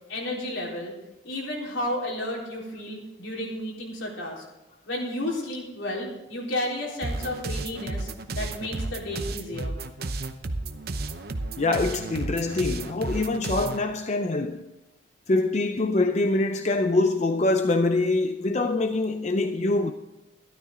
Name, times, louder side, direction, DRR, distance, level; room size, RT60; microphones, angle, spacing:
voice 1, 0.1-0.9 1.2-4.4 4.9-8.1 8.4-9.8, left 1 dB, 75° left, 3.9 m, -32 dB
sound 1, 7.0-13.8, right 2 dB, 50° right, 0.8 m, -32 dB
voice 2, 11.6-14.7 15.3-19.9, left 2 dB, 35° left, 0.5 m, -24 dB
13.5 x 12.0 x 3.8 m
head